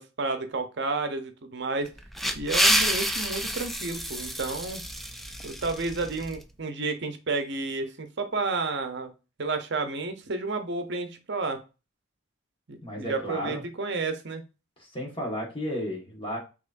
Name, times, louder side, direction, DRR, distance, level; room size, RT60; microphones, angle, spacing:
voice 1, 0.0-1.9 2.3-4.8 5.4-9.1 9.4-11.6 12.7-14.4, right 3 dB, 55° right, 8 dB, 0.7 m, -31 dB
sound 1, 1.9-6.4, equal, ahead, 0.3 m, -28 dB
voice 2, 12.8-13.6 14.8-16.4, equal, 25° left, -1 dB, 1.5 m, -33 dB
6.0 x 3.1 x 2.6 m, 0.30 s
head